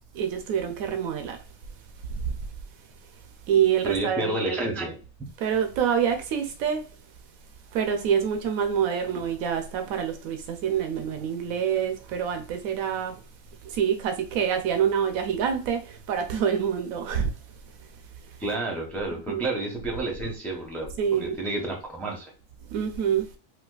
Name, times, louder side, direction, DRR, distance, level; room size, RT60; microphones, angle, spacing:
voice 1, 0.1-1.4 2.2-2.3 3.5-4.3 5.4-6.8 7.7-13.2 13.6-17.3 19.3-19.5 21.0-21.4 22.7-23.3, right 8 dB, 85° right, 1.0 m, -26 dB
voice 2, 3.8-5.0 18.4-22.3, right 2 dB, 5° left, 0.4 m, -30 dB
4.6 x 2.2 x 2.3 m
omnidirectional pair, 1.4 m